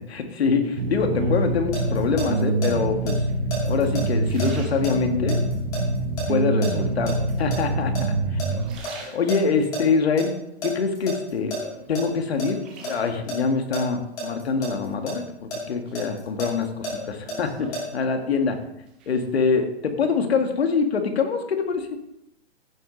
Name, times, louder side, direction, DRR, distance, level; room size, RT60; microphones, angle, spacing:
voice 1, 0.0-3.2 3.7-5.4 6.3-7.9 8.3-8.4 9.1-10.3 10.6-11.6 11.9-15.2 15.7-18.6 19.1-21.9, left 5 dB, 70° left, 5 dB, 2.0 m, -24 dB
sound 1, 0.6-1.7 2.5-3.0 3.5-5.5 6.0-6.6 7.4-8.1 8.4-9.7 10.2-11.4 11.8-13.5 14.8-15.4 15.9-18.5 18.7-19.2, right 2 dB, 10° right, 0.6 m, -42 dB
sound 2, 0.8-8.8, right 2 dB, 70° right, 3.5 m, -25 dB
sound 3, 1.3-2.7 3.1-7.6 7.9-9.8 10.2-10.3 10.6-12.0 12.4-12.9 13.3-15.1 15.5-17.8, right 1 dB, 10° left, 2.2 m, -32 dB
15.5 x 6.6 x 4.0 m, 0.84 s
hypercardioid pair, 180°, 32 cm